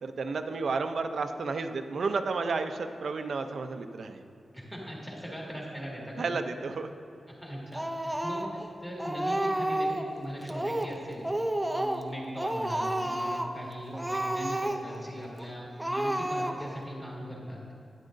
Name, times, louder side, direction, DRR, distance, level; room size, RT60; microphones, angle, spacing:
voice 1, 0.0-4.2 6.2-6.9, right 4 dB, 60° right, 8 dB, 0.5 m, -32 dB
voice 2, 4.5-6.4 7.3-11.3 11.7-17.6, equal, 10° left, -4 dB, 1.9 m, -40 dB
Speech, 7.7-8.7 9.0-10.1 10.5-11.0 11.2-12.1 12.4-13.6 13.9-15.0 15.4-15.5 15.8-16.8, right 1 dB, 5° right, 0.5 m, -31 dB
11.5 x 9.8 x 2.6 m, 2.6 s
wide cardioid pair, 155°, 0 cm